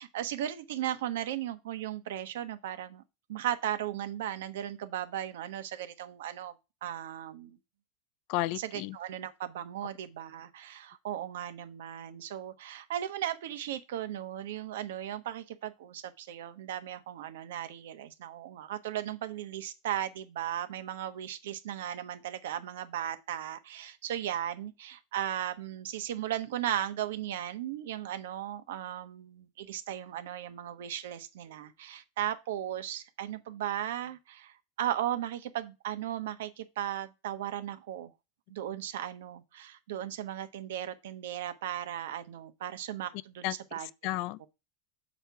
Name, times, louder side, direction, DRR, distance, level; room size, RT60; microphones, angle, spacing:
voice 1, 0.0-3.0 3.3-6.5 6.8-7.6 8.6-38.1 38.5-43.9 44.4-44.5, right 11 dB, 85° right, 1.0 m, -36 dB
voice 2, 8.3-9.0 43.4-43.5 43.8-44.5, left 17 dB, 45° left, 0.3 m, -33 dB
7.0 x 4.4 x 4.6 m
supercardioid pair, 170°, 0 cm